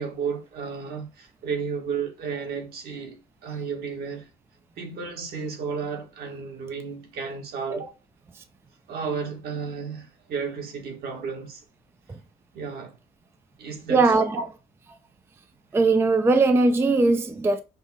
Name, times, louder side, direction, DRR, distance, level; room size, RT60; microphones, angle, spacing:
voice 1, 0.0-4.3 4.8-7.9 8.9-11.6 12.5-12.9 13.6-14.0 14.3-14.4, right 5 dB, 65° right, 1.4 m, -33 dB
voice 2, 13.9-14.4 15.7-17.6, right 3 dB, 15° right, 0.4 m, -19 dB
5.3 x 2.0 x 3.8 m
cardioid pair, 110°, 17 cm